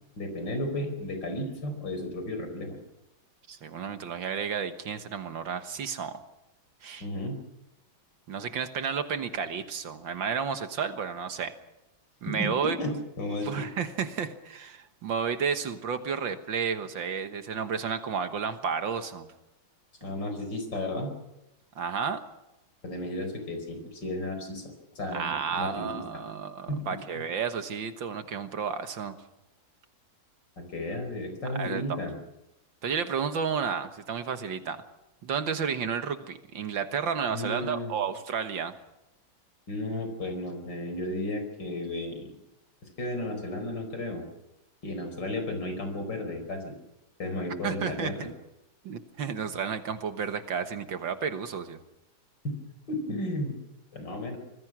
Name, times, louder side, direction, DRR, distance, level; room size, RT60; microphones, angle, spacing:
voice 1, 0.2-2.8 7.0-7.4 12.3-13.6 20.0-21.2 22.8-26.2 26.7-26.8 27.1-27.2 30.6-32.2 37.3-37.9 39.7-42.3 43.0-44.3 44.8-46.7 47.2-48.3 52.4-52.6 52.9-53.6 53.9-54.4, left 1 dB, 55° left, 6 dB, 5.3 m, -33 dB
voice 2, 3.5-6.2 6.8-7.1 8.3-11.6 12.2-12.8 13.4-19.3 21.8-22.2 25.1-29.2 31.6-31.8 32.8-34.8 35.2-38.7 47.6-48.3 48.8-51.8, right 6 dB, 65° right, 9 dB, 2.0 m, -32 dB
26.0 x 20.0 x 6.2 m, 0.94 s
omnidirectional pair, 2.3 m